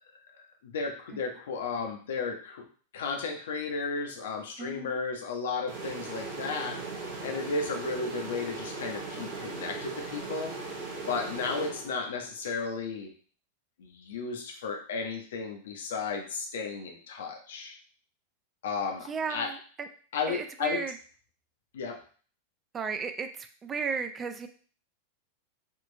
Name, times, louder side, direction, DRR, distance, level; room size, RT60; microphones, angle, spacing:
voice 1, 0.6-2.7 2.9-10.5 11.1-13.1 13.8-17.7 18.6-19.5 20.1-20.8 21.7-22.0, left 4 dB, 60° left, 2 dB, 0.6 m, -34 dB
voice 2, 4.6-5.0 19.1-19.9 20.3-21.0 22.7-24.5, right 5 dB, 20° right, 8 dB, 0.3 m, -34 dB
sound 1, 5.7-12.3, right 3 dB, 50° right, 0.7 m, -38 dB
3.6 x 2.4 x 2.6 m, 0.42 s
figure-of-eight pair, 90°, 0 cm